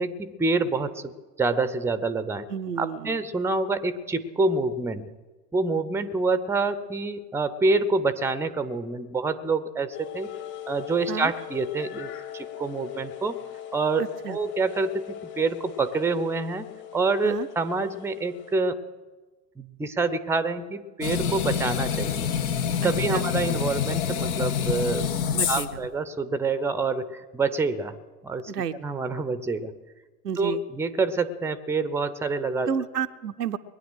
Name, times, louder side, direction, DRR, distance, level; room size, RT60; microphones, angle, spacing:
voice 1, 0.0-2.5 2.8-5.1 5.5-10.3 10.7-13.4 13.7-16.7 16.9-18.8 19.6-22.3 22.8-25.1 25.5-28.0 28.2-28.5 28.8-29.7 30.4-32.7, right 3 dB, 5° right, 14 dB, 0.7 m, -27 dB
voice 2, 2.5-3.2 11.1-11.3 14.0-14.4 17.2-17.5 22.8-23.3 25.3-25.8 28.5-28.7 30.2-30.6 32.7-33.6, right 7 dB, 80° right, 9 dB, 0.8 m, -31 dB
sound 1, 9.9-18.5, left 10 dB, 45° left, 3.0 m, -40 dB
sound 2, 21.0-25.9, left 7 dB, 65° left, 1.3 m, -27 dB
21.0 x 9.4 x 6.3 m, 1.2 s
figure-of-eight pair, 80°, 47 cm